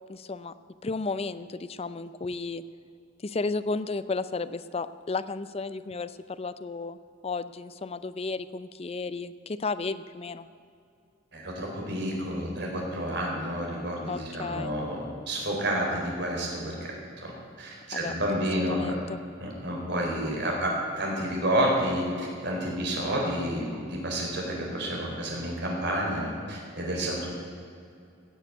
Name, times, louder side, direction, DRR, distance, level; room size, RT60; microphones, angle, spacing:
voice 1, 0.1-0.5 0.8-2.6 3.2-7.0 7.2-10.5 14.1-14.7 17.9-18.1 18.7-19.2, left 3 dB, 30° left, 13 dB, 0.5 m, -33 dB
voice 2, 11.3-17.3 17.6-19.0 19.4-27.3, equal, 60° right, -1 dB, 4.0 m, -30 dB
17.0 x 6.9 x 9.2 m, 2.5 s
head